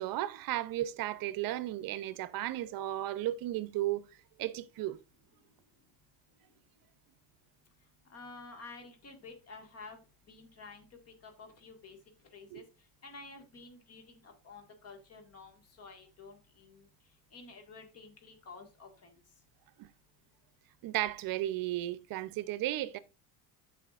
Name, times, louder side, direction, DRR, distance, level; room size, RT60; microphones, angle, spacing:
voice 1, 0.0-4.0 4.4-5.0 12.5-12.6 19.8-19.9 20.8-23.0, right 14 dB, 55° right, 0.7 m, -34 dB
voice 2, 8.1-10.0 10.3-10.9 11.2-12.0 12.3-12.6 13.0-16.9 17.3-19.2, left 3 dB, 35° left, 1.8 m, -51 dB
13.0 x 5.0 x 2.5 m
cardioid pair, 140°, 42 cm